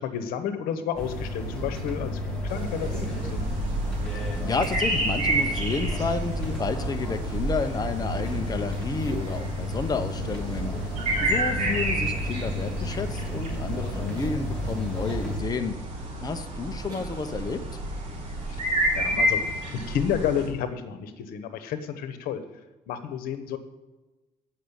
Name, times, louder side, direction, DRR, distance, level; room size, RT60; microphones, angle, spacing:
voice 1, 0.0-2.1 2.4-3.4 11.6-11.7 18.5-18.6 18.9-19.4 19.9-22.4 22.9-23.6, left 8 dB, 85° left, 10 dB, 1.0 m, -30 dB
sound 1, 1.0-15.4, left 1 dB, 5° left, 2.8 m, -32 dB
sound 2, 2.1-3.3 5.2-6.2 8.1-8.2 8.7-9.5 13.8-14.9 15.4-15.5 16.9-17.9 18.4-18.5 18.8-18.9, right 1 dB, 30° right, 4.0 m, -47 dB
sound 3, 2.5-20.5, right 1 dB, 45° right, 4.5 m, -31 dB
voice 2, 4.4-15.8 16.2-17.6, left 4 dB, 25° left, 6 dB, 0.8 m, -31 dB
8.6 x 6.3 x 8.2 m, 1.1 s
cardioid pair, 105°, 15 cm